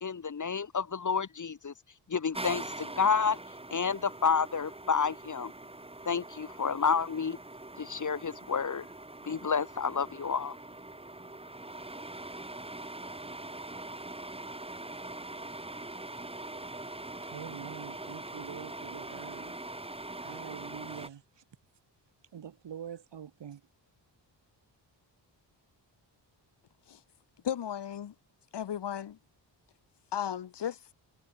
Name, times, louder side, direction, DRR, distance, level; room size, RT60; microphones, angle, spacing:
voice 1, 0.0-1.7 2.1-3.4 3.7-5.5 6.1-7.4 7.8-8.9 9.2-10.6, left 6 dB, 40° left, 2.5 m, -30 dB
sound 1, 2.3-21.1, right 2 dB, 15° right, 2.4 m, -43 dB
voice 2, 17.2-19.6 20.2-21.4 22.3-23.6, right 8 dB, 70° right, 3.9 m, -45 dB
voice 3, 27.4-28.1 28.5-29.2 30.1-30.8, left 9 dB, 65° left, 1.9 m, -35 dB
wide cardioid pair, 110°, 44 cm